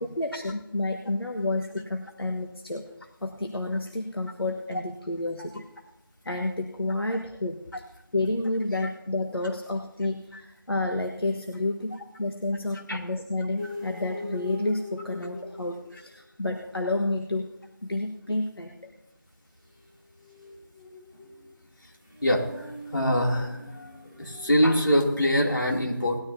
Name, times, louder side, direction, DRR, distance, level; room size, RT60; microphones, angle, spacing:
voice 1, 0.1-2.8 3.2-5.7 6.2-17.5 17.8-18.7, left 2 dB, 90° left, 3 dB, 1.5 m, -30 dB
sound 1, 13.6-16.2 19.7-24.9, left 2 dB, 20° left, 2.4 m, -42 dB
voice 2, 22.2-23.9 24.2-26.2, equal, 60° left, -1 dB, 2.9 m, -24 dB
19.5 x 13.0 x 2.8 m, 0.88 s
figure-of-eight pair, 175°, 12 cm